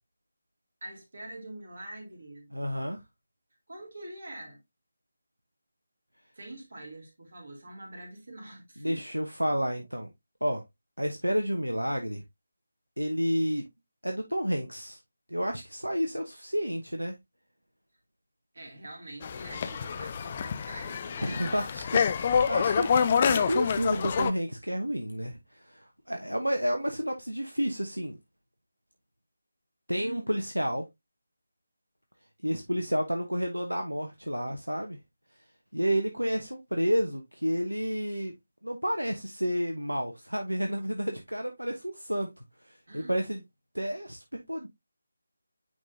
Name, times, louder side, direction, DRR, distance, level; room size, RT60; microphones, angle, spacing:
voice 1, 0.8-2.5 3.7-4.6 6.3-9.0 18.5-21.7 30.0-30.4 42.9-43.2, right 1 dB, 55° right, 3.1 m, -45 dB
voice 2, 2.5-3.0 8.8-10.1 10.4-10.6 11.0-12.2 13.0-13.6 14.0-15.0 15.3-17.1 21.2-28.2 29.9-30.9 32.4-35.0 35.7-38.3 38.6-42.3 42.6-43.4 43.7-44.7, equal, 85° right, 1.0 m, -30 dB
sound 1, 19.2-24.3, left 6 dB, 25° left, 0.5 m, -27 dB
9.4 x 3.8 x 2.7 m
figure-of-eight pair, 155°, 0 cm